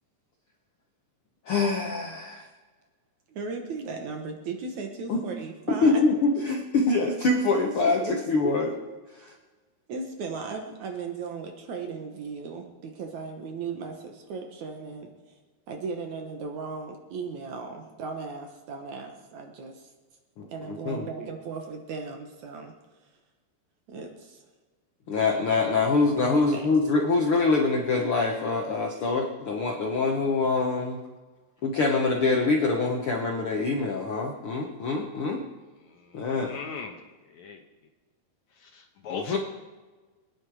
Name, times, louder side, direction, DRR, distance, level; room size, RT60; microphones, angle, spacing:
voice 1, 1.4-2.5 5.1-5.2 5.8-8.7 9.1-9.3 20.4-21.1 25.1-31.0 31.6-35.4 36.1-36.6 39.1-39.4, left 3 dB, 85° left, 1 dB, 1.2 m, -25 dB
voice 2, 3.3-5.9 7.6-7.7 8.0-8.8 9.9-15.4 15.7-19.9 20.5-22.7 23.9-24.4 26.0-26.7, right 4 dB, 65° right, 4 dB, 2.2 m, -37 dB
voice 3, 35.9-37.0 37.3-37.6 38.6-39.4, left 5 dB, 65° left, 3 dB, 2.0 m, -39 dB
24.0 x 9.8 x 4.9 m, 1.3 s
omnidirectional pair, 4.3 m